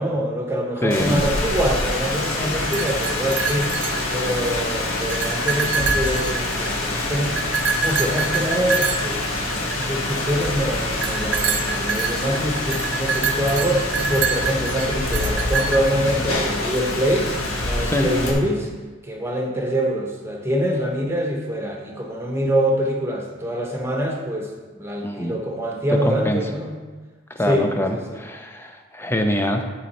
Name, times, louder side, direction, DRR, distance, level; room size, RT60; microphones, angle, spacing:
voice 1, 0.0-7.5 7.8-17.3 17.6-18.7 19.0-24.5 24.8-26.8 27.4-28.2, equal, 10° right, 0 dB, 1.0 m, -25 dB
voice 2, 0.8-1.2 17.8-18.1 25.0-25.4 26.1-26.4 27.3-29.6, left 1 dB, 10° left, 5 dB, 0.6 m, -24 dB
Rain, 0.9-18.3, left 2 dB, 90° left, 1.5 m, -26 dB
sound 1, 2.6-4.5 4.9-6.9 7.4-10.1 11.0-16.1, right 6 dB, 60° right, 0.6 m, -26 dB
11.0 x 5.3 x 4.3 m, 1.4 s
head